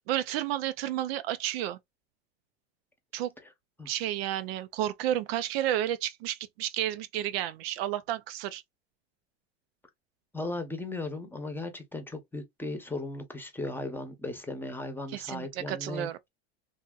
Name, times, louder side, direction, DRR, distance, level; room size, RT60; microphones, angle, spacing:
voice 1, 0.1-1.8 3.1-3.3 3.9-8.6 15.1-16.2, right 12 dB, 65° right, 0.5 m, -31 dB
voice 2, 10.3-16.1, left 2 dB, 5° left, 0.9 m, -36 dB
3.4 x 2.7 x 2.4 m
hypercardioid pair, 110°, 33 cm